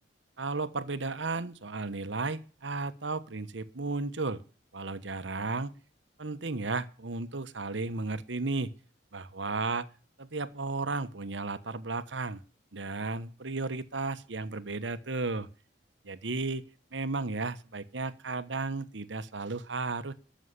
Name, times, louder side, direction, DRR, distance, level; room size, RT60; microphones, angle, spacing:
voice 1, 0.4-4.4 4.7-5.7 6.2-8.7 9.1-9.9 10.2-12.4 12.7-15.5 16.0-16.6 16.9-20.1, right 3 dB, 75° right, 12 dB, 1.1 m, -34 dB
13.5 x 6.5 x 8.2 m, 0.38 s
head